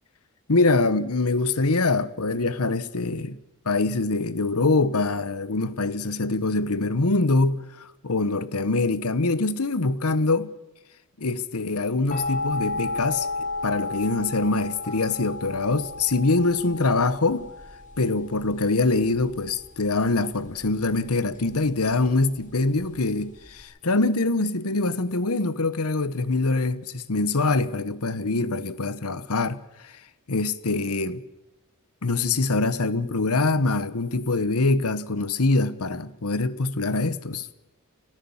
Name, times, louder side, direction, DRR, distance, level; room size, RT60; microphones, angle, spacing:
voice 1, 0.5-3.4 3.6-10.5 11.2-13.3 13.6-17.5 18.0-30.0 30.3-31.2 32.0-37.5, left 3 dB, 85° left, 1.2 m, -24 dB
sound 1, 12.1-23.6, left 3 dB, 35° left, 3.8 m, -34 dB
29.5 x 14.0 x 7.3 m
head